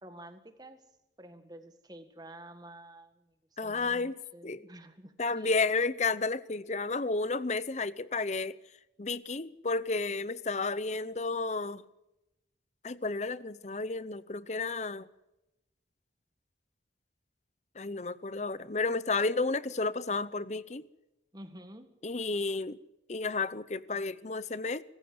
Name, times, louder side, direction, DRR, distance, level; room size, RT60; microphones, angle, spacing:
voice 1, 0.0-0.8 1.2-3.3 3.6-5.5 21.3-21.9, right 1 dB, 20° right, 1.9 m, -50 dB
voice 2, 3.6-4.6 5.2-8.6 9.0-11.8 12.8-15.1 17.8-20.8 22.0-22.8 23.1-24.8, left 3 dB, 40° left, 0.8 m, -32 dB
24.5 x 15.0 x 7.8 m
head